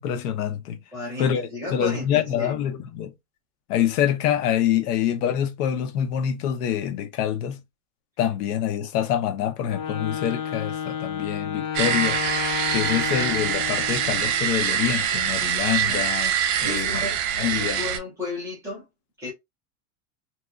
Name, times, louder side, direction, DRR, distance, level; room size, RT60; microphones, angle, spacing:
voice 1, 0.0-0.8 1.2-1.4 1.7-3.1 3.7-7.6 8.2-12.2 12.7-16.3 16.6-17.1 17.4-17.8, left 10 dB, 80° left, 0.7 m, -25 dB
voice 2, 0.9-2.6 15.9-16.1 16.6-17.2 17.5-18.8 19.2-19.3, left 2 dB, 5° right, 0.3 m, -33 dB
Wind instrument woodwind instrument, 9.6-14.5, left 7 dB, 65° left, 1.1 m, -31 dB
sound 1, 11.7-18.0, right 9 dB, 80° right, 0.8 m, -25 dB
2.8 x 2.3 x 2.3 m
supercardioid pair, 170°, 46 cm